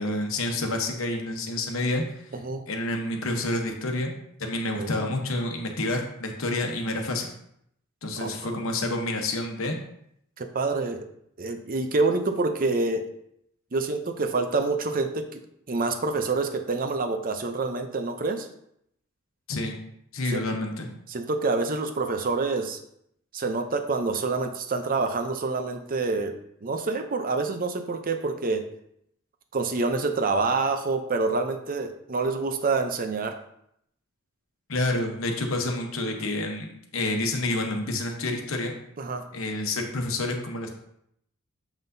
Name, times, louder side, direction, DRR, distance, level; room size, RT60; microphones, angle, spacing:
voice 1, 0.0-2.0 2.7-4.1 4.4-7.3 8.0-9.8 19.5-19.7 20.1-20.9 34.7-38.7 39.3-40.7, left 2 dB, 70° left, 3 dB, 1.0 m, -28 dB
voice 2, 2.3-2.6 4.8-4.9 8.2-8.6 10.4-11.1 11.4-13.1 13.7-15.4 15.7-18.5 20.3-20.4 21.1-22.8 23.3-28.6 29.5-33.4 39.0-39.3, right 3 dB, 45° right, 7 dB, 0.6 m, -27 dB
7.1 x 5.7 x 2.7 m, 0.74 s
head